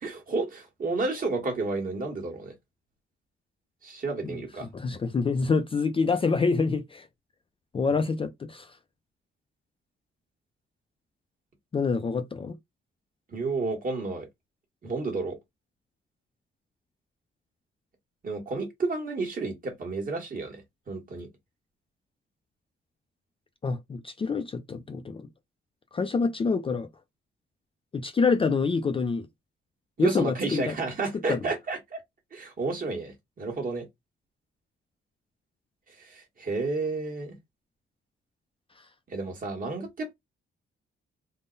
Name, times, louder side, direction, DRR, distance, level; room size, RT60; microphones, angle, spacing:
voice 1, 0.0-2.5 3.8-4.7 13.3-14.3 14.8-15.3 18.2-20.6 20.9-21.3 30.0-32.0 32.3-33.8 36.0-37.4 39.1-40.1, right 3 dB, 40° right, 1.4 m, -31 dB
voice 2, 4.7-7.1 7.7-8.7 11.7-12.6 23.6-25.3 25.9-26.9 27.9-29.3 30.0-30.8 31.3-31.4, left 4 dB, 25° left, 0.4 m, -26 dB
3.7 x 2.1 x 3.8 m
wide cardioid pair, 155°, 21 cm